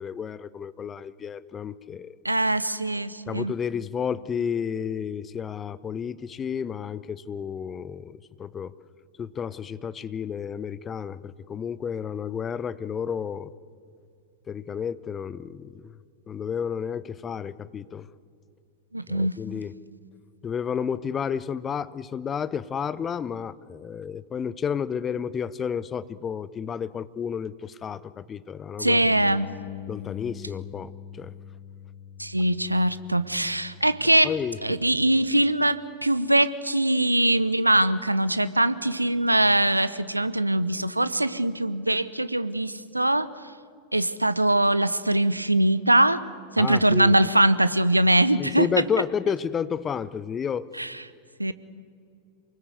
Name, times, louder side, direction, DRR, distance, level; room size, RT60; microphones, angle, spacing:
voice 1, 0.0-2.2 3.3-8.7 9.2-13.5 14.5-16.0 16.3-18.1 19.1-19.7 20.4-29.0 29.9-30.9 31.2-31.3 34.2-34.8 46.6-47.1 48.4-50.7, left 7 dB, 20° left, 17 dB, 0.8 m, -31 dB
voice 2, 2.2-3.5 18.9-19.3 28.8-29.5 32.2-34.3 34.6-43.3 43.9-46.2 46.6-48.7 50.8-50.9 51.4-51.5, right 1 dB, 85° right, 15 dB, 0.9 m, -22 dB
Bass guitar, 29.0-35.3, left 6 dB, 65° left, 4.5 m, -43 dB
28.0 x 20.5 x 8.2 m, 2.3 s
figure-of-eight pair, 90°, 0 cm